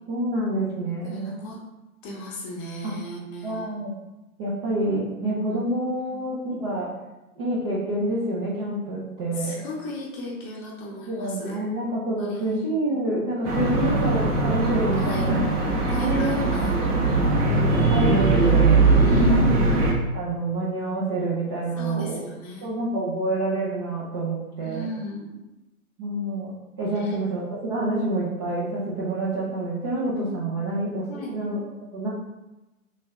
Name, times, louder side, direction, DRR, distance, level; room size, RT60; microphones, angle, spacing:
voice 1, 0.1-1.4 2.8-3.0 3.4-3.9 4.4-6.9 7.4-9.5 11.1-15.4 16.0-16.9 17.5-18.6 19.0-19.5 20.1-22.2 22.6-24.9 26.0-31.6 31.9-32.1, right 1 dB, 20° right, -8 dB, 0.4 m, -27 dB
voice 2, 1.0-1.6 2.0-3.7 6.1-6.2 9.4-11.6 12.2-12.6 13.7-14.1 14.9-15.5 15.9-16.8 19.1-19.5 21.8-22.7 24.6-25.4 26.9-27.2 30.5-30.7 31.1-31.3, left 1 dB, 25° left, -1 dB, 0.8 m, -35 dB
sound 1, 13.4-19.9, right 3 dB, 80° right, 1.3 m, -20 dB
3.3 x 2.6 x 3.5 m, 1.0 s
hypercardioid pair, 125°, 45 cm